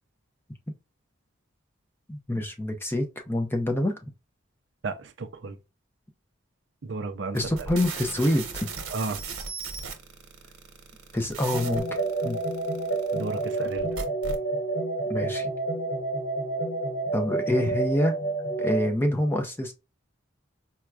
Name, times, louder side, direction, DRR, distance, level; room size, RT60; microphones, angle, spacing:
voice 1, 2.1-4.1 7.3-8.7 11.1-11.8 12.2-12.4 15.1-15.5 17.1-18.1 18.6-19.7, left 1 dB, 10° left, 0.5 m, -26 dB
voice 2, 4.8-5.5 6.8-7.4 8.9-9.2 13.1-13.9, right 3 dB, 60° right, 0.5 m, -33 dB
sound 1, 7.4-14.4, right 4 dB, 90° right, 1.0 m, -37 dB
sound 2, 11.5-18.9, right 2 dB, 60° left, 0.7 m, -29 dB
4.4 x 2.2 x 2.4 m
head